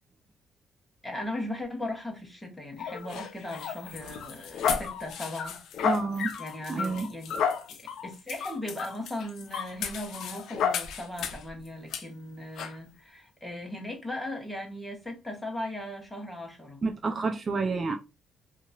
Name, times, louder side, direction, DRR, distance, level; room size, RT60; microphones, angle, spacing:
voice 1, 1.0-5.6 6.4-7.4 7.7-16.8, left 1 dB, 5° left, 1.2 m, -38 dB
sound 1, 2.8-11.5 11.9-12.0 12.6-12.8, left 7 dB, 80° left, 0.5 m, -33 dB
voice 2, 5.8-6.3 6.7-7.1 16.8-18.0, right 4 dB, 40° right, 0.4 m, -29 dB
2.9 x 2.6 x 2.3 m
cardioid pair, 90°, 0 cm